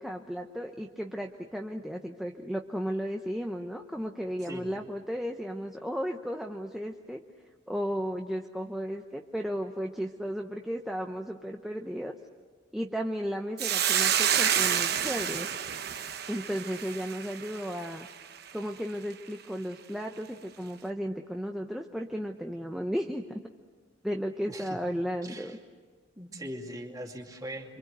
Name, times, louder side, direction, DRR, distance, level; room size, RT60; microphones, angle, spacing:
voice 1, 0.0-7.2 7.7-12.1 12.7-15.5 16.3-18.1 18.5-23.4 24.0-25.6, equal, ahead, 2 dB, 0.8 m, -34 dB
Hiss, 13.6-18.1, right 9 dB, 50° right, 1.0 m, -28 dB
voice 2, 24.4-24.8 25.2-25.6 26.2-27.8, equal, 20° right, 2 dB, 2.5 m, -41 dB
27.0 x 25.0 x 8.1 m, 1.4 s
head